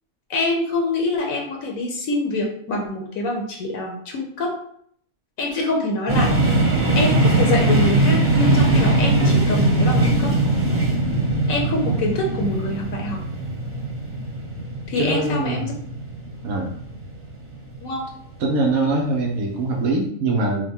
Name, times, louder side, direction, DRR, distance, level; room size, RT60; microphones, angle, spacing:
voice 1, 0.3-4.5 5.4-6.6 7.0-10.3 11.5-13.2 14.9-15.7 17.8-18.1, left 2 dB, 70° left, 1 dB, 1.1 m, -25 dB
sound 1, 6.1-17.9, right 2 dB, 15° right, 0.6 m, -20 dB
voice 2, 15.0-15.7 16.4-16.8 18.4-20.7, right 2 dB, 75° right, 0 dB, 1.1 m, -23 dB
5.1 x 2.2 x 3.5 m, 0.64 s
omnidirectional pair, 1.5 m